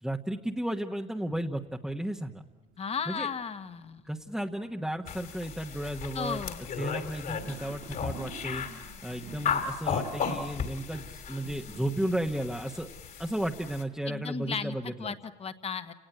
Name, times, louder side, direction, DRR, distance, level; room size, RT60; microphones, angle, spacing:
voice 1, 0.0-2.4 3.1-3.3 4.1-6.4 6.8-8.6 9.0-12.9 13.2-15.1, right 1 dB, ahead, 1 dB, 1.3 m, -34 dB
sound 1, 1.5-14.8, right 5 dB, 75° right, 3.6 m, -53 dB
voice 2, 2.8-4.1 6.1-6.6 14.0-15.9, left 6 dB, 35° left, 10 dB, 1.6 m, -35 dB
sound 2, 5.1-13.8, left 6 dB, 55° left, 3.2 m, -36 dB
29.5 x 19.0 x 9.2 m, 1.1 s
cardioid pair, 110°, 17 cm